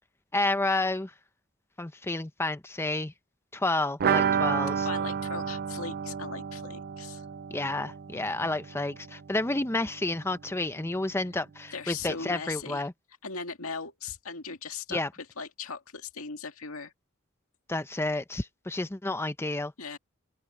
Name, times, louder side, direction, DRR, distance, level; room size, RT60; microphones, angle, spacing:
voice 1, 0.3-1.1 1.8-3.1 3.5-4.9 7.5-12.9 14.9-15.1 17.7-19.7, left 2 dB, 10° left, 0.7 m, -30 dB
sound 1, 4.0-9.6 9.9-10.0 10.2-10.3, right 7 dB, 45° right, 0.4 m, -31 dB
voice 2, 4.8-7.3 11.7-12.8 13.2-15.0 15.4-16.9 19.8-20.0, left 5 dB, 85° left, 2.1 m, -38 dB
open air
head